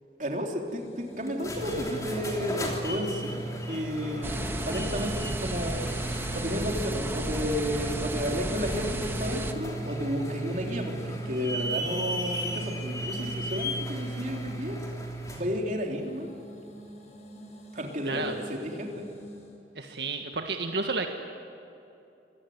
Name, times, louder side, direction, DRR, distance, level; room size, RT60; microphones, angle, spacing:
voice 1, 0.2-5.8 6.3-14.8 15.3-16.3 17.7-19.0, equal, 45° right, 1 dB, 3.6 m, -32 dB
sound 1, 0.7-19.6, right 1 dB, 40° left, 5.0 m, -48 dB
sound 2, 1.3-15.5, right 1 dB, 20° left, 3.2 m, -35 dB
sound 3, 4.2-9.5, right 1 dB, 15° right, 1.4 m, -33 dB
voice 2, 18.0-18.3 19.7-21.1, right 4 dB, 80° right, 4 dB, 1.6 m, -31 dB
26.0 x 18.0 x 9.6 m, 2.8 s
head